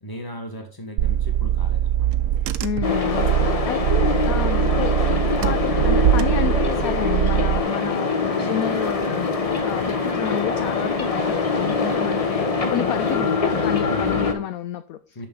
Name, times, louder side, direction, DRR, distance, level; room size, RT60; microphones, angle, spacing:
voice 1, 0.0-2.1 3.4-3.6 13.8-14.1 15.1-15.3, equal, 15° left, 3 dB, 1.5 m, -37 dB
Car / Engine, 1.0-7.6, right 11 dB, 70° right, 1.0 m, -22 dB
voice 2, 2.6-15.3, left 10 dB, 70° left, 11 dB, 0.9 m, -30 dB
sound 1, 2.8-14.3, left 4 dB, 30° left, 0.6 m, -23 dB
6.7 x 6.2 x 3.8 m, 0.38 s
omnidirectional pair, 1.8 m